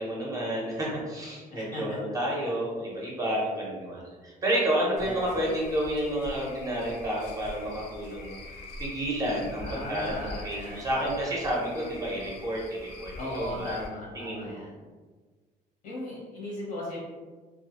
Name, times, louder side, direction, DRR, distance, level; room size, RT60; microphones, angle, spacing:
voice 1, 0.0-8.3 8.8-13.8 14.1-14.6, right 1 dB, 20° right, -4 dB, 0.5 m, -30 dB
voice 2, 1.5-2.0 5.0-5.4 9.6-10.9 13.2-14.8 15.8-17.0, left 1 dB, 60° left, -5 dB, 0.9 m, -37 dB
Cricket / Frog, 5.0-13.9, left 2 dB, 85° left, 0.5 m, -44 dB
2.3 x 2.1 x 2.8 m, 1.4 s
cardioid pair, 150°, 16 cm